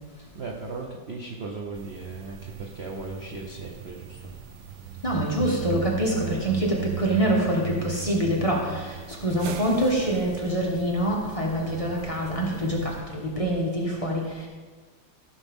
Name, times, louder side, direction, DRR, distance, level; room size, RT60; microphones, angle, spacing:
voice 1, 0.3-4.3, right 3 dB, 50° right, 0 dB, 0.8 m, -37 dB
sound 1, 1.7-13.0, right 10 dB, 75° right, 1.1 m, -38 dB
voice 2, 5.0-14.5, right 1 dB, 20° left, -3 dB, 1.3 m, -25 dB
14.5 x 6.2 x 3.6 m, 1.4 s
omnidirectional pair, 2.1 m